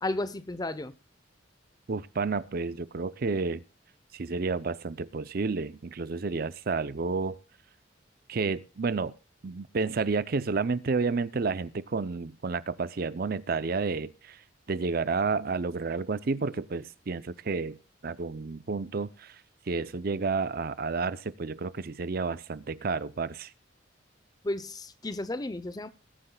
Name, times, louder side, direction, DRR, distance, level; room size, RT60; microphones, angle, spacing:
voice 1, 0.0-0.9 24.4-25.9, left 2 dB, 20° left, 15 dB, 0.6 m, -33 dB
voice 2, 1.9-3.6 4.1-7.4 8.3-9.1 9.4-14.4 14.7-17.8 18.0-19.4 19.7-23.5, right 4 dB, 50° right, 17 dB, 0.5 m, -30 dB
20.5 x 9.7 x 2.3 m, 0.33 s
head